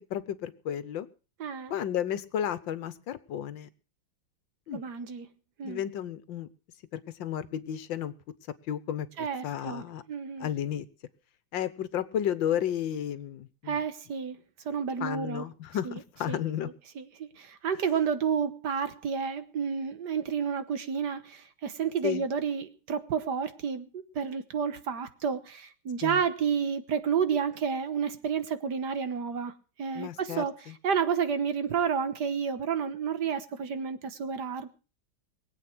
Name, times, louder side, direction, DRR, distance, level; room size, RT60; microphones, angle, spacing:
voice 1, 0.1-1.1 1.7-3.7 4.7-4.8 5.6-6.5 6.9-8.1 8.7-10.0 10.4-10.9 11.5-13.8 15.0-16.7 22.0-22.2 26.0-26.2 29.9-30.7, left 10 dB, 75° left, 1.6 m, -33 dB
voice 2, 1.4-1.7 4.7-5.3 5.6-5.8 9.2-9.8 10.1-10.5 13.7-15.4 15.8-16.0 16.3-16.4 17.0-29.5 29.8-30.5 30.8-34.7, right 6 dB, 60° right, 1.7 m, -30 dB
22.0 x 8.4 x 6.0 m
omnidirectional pair, 2.1 m